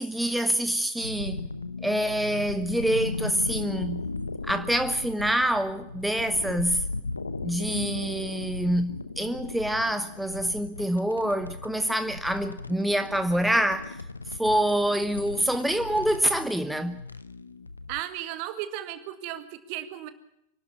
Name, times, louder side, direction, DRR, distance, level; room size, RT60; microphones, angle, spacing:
voice 1, 0.0-1.4 1.8-4.1 4.4-6.8 7.4-14.0 14.4-17.0, right 1 dB, ahead, 1.0 m, -26 dB
sound 1, 1.0-18.0, left 3 dB, 80° left, 0.9 m, -37 dB
voice 2, 17.9-20.1, right 12 dB, 45° right, 1.9 m, -35 dB
25.0 x 12.5 x 9.6 m
figure-of-eight pair, 90°, 0 cm